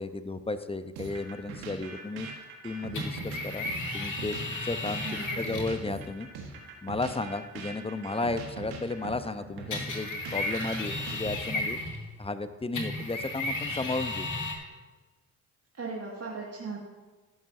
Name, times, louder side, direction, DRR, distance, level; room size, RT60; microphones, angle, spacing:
voice 1, 0.0-2.3 2.6-3.7 3.9-4.4 4.6-6.3 6.8-11.8 12.2-14.3, left 3 dB, 15° left, 11 dB, 0.8 m, -34 dB
sound 1, 1.0-11.7, right 4 dB, 75° right, 1.6 m, -42 dB
sound 2, 2.9-5.8 9.7-12.1 12.7-14.5, left 2 dB, 55° left, 2.3 m, -34 dB
voice 2, 5.0-5.5 15.8-16.8, right 4 dB, 40° right, -3 dB, 2.0 m, -38 dB
13.5 x 11.0 x 2.7 m, 1.3 s
hypercardioid pair, 45°, 37 cm